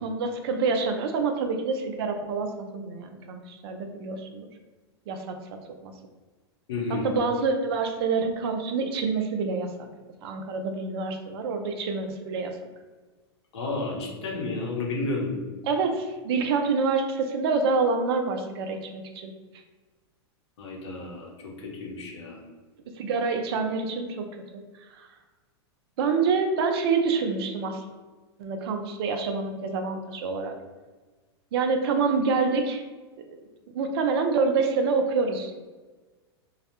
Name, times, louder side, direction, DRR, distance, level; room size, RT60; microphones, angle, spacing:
voice 1, 0.0-4.5 5.1-5.4 5.8-5.9 6.9-9.9 10.2-12.5 15.7-19.3 23.0-24.2 24.9-25.1 26.0-27.8 28.4-30.5 31.5-32.8 33.7-35.5, right 4 dB, 65° right, 5 dB, 0.4 m, -27 dB
voice 2, 6.7-7.1 13.5-15.4 20.6-22.4, left 2 dB, 80° left, -2 dB, 0.8 m, -31 dB
2.3 x 2.1 x 2.9 m, 1.3 s
hypercardioid pair, 115°, 14 cm